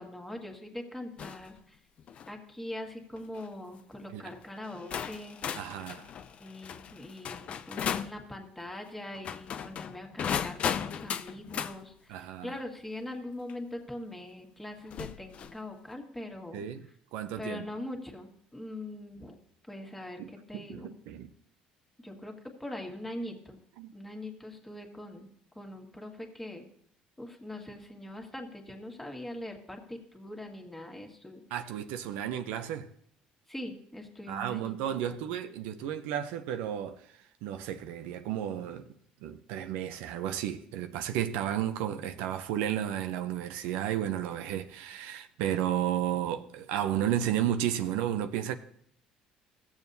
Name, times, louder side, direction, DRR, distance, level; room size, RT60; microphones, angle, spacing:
voice 1, 0.0-1.8 2.3-5.4 6.4-16.6 17.4-19.4 19.7-20.2 20.5-20.9 22.0-22.3 22.6-23.6 23.9-25.3 25.5-26.7 27.2-31.4 33.5-34.7 35.1-35.3, left 1 dB, 10° left, 1.7 m, -42 dB
sound 1, 1.2-1.5 2.0-2.3 3.2-3.4 4.3-4.4 4.9-8.2 9.1-11.8 13.5-13.6 14.9-15.6, left 8 dB, 50° left, 0.5 m, -36 dB
voice 2, 5.5-6.1 12.1-12.5 16.5-16.8 17.1-17.7 20.2-21.3 23.8-23.9 31.5-32.9 34.3-38.9 39.2-48.6, right 10 dB, 85° right, 0.6 m, -33 dB
15.5 x 7.2 x 2.7 m
supercardioid pair, 95°, 3 cm